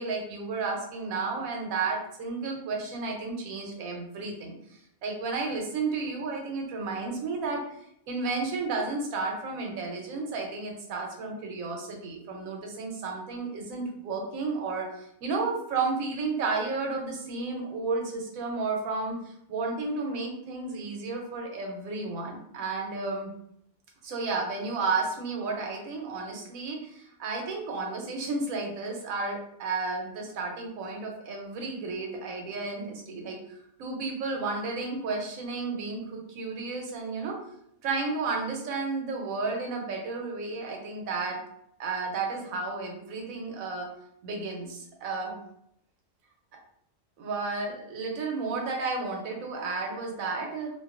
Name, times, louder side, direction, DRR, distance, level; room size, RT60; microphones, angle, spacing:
voice 1, 0.0-4.5 5.0-7.6 8.1-19.2 19.5-23.3 24.0-37.4 37.8-41.4 41.8-43.9 44.2-45.4 47.2-50.7, right 3 dB, 85° right, 1 dB, 1.1 m, -32 dB
2.5 x 2.3 x 2.4 m, 0.75 s
omnidirectional pair, 1.4 m